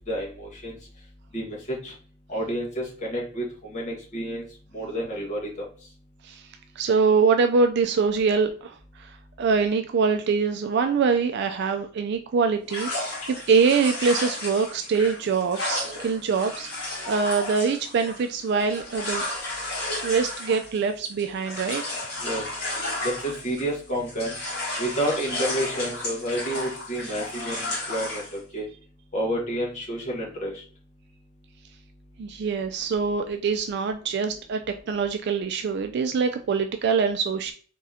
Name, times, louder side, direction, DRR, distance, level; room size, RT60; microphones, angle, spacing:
voice 1, 0.1-0.7 1.3-1.9 2.3-3.4 3.7-4.4 4.7-5.6 22.2-22.4 23.0-24.3 24.8-28.6 29.1-30.6, right 1 dB, 35° left, -3 dB, 1.4 m, -30 dB
voice 2, 6.8-8.7 9.4-16.7 17.1-19.2 20.0-21.8 32.2-34.6 34.9-37.5, right 5 dB, 55° right, 6 dB, 0.3 m, -24 dB
sound 1, 12.7-23.8 24.1-28.4, left 2 dB, 55° left, 1.8 m, -33 dB
4.1 x 3.7 x 2.7 m, 0.41 s
head